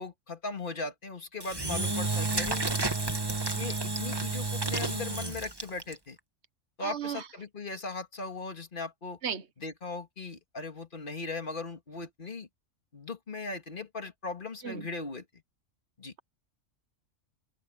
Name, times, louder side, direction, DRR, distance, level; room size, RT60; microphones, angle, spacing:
voice 1, 0.0-2.6 3.5-6.2 6.8-9.2 9.6-12.5 12.9-15.3 16.0-16.1, left 3 dB, 40° left, 2.2 m, -38 dB
Engine / Drill, 1.4-5.9, right 3 dB, 20° right, 1.4 m, -31 dB
voice 2, 6.8-7.2 9.2-9.4 14.6-14.9, right 7 dB, 60° right, 1.3 m, -34 dB
omnidirectional pair, 1.3 m